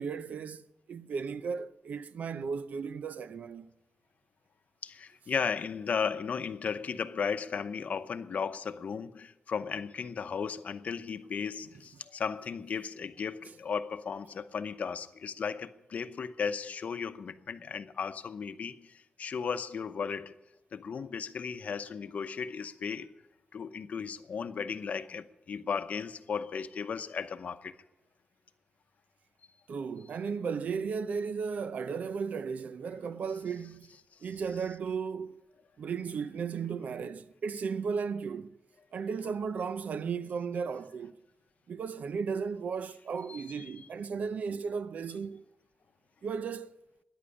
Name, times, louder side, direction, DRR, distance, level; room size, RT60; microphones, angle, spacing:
voice 1, 0.0-3.7 29.7-33.9 34.2-35.4 35.8-38.6 38.9-41.1 41.7-45.4 46.2-46.7, right 5 dB, 85° right, 0.6 m, -35 dB
voice 2, 4.8-20.4 20.7-23.1 23.5-27.8 43.3-43.7, left 6 dB, 70° left, 0.7 m, -35 dB
14.0 x 10.5 x 9.8 m
wide cardioid pair, 105°, 3 cm